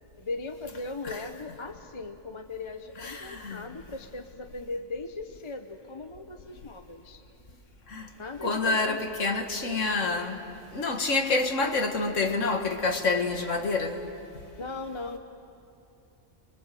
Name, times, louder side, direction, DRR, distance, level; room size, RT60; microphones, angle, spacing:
voice 1, 0.2-7.2 8.2-9.0 14.6-15.2, left 3 dB, 25° left, 6 dB, 0.9 m, -38 dB
voice 2, 3.0-3.7 7.9-8.1 8.4-10.4 10.7-14.1, left 3 dB, 85° left, 4 dB, 2.1 m, -28 dB
30.0 x 22.0 x 7.7 m, 2.7 s
omnidirectional pair, 1.3 m